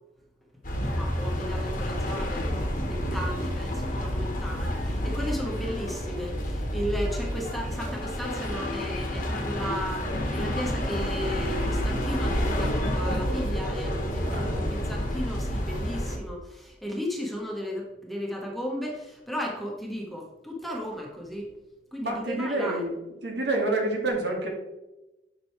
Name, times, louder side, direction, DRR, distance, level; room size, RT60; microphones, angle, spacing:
sound 1, 0.6-16.2, equal, 50° left, 1.6 m, -29 dB
voice 1, 0.8-2.5 2.8-21.4 21.9-22.8, equal, ahead, -2 dB, 1.5 m, -35 dB
voice 2, 14.2-14.9 22.0-22.9 23.2-24.5, right 2 dB, 75° right, 0 dB, 2.3 m, -28 dB
9.9 x 6.1 x 3.4 m, 0.99 s
head